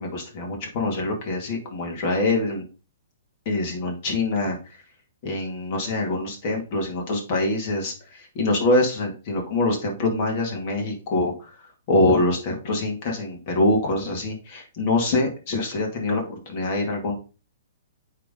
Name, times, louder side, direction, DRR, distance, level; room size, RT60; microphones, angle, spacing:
voice 1, 0.0-2.7 3.5-4.6 5.2-11.6 11.9-17.2, left 2 dB, 40° left, 2 dB, 2.4 m, -24 dB
9.1 x 3.9 x 3.8 m, 0.33 s
hypercardioid pair, 155°, 0 cm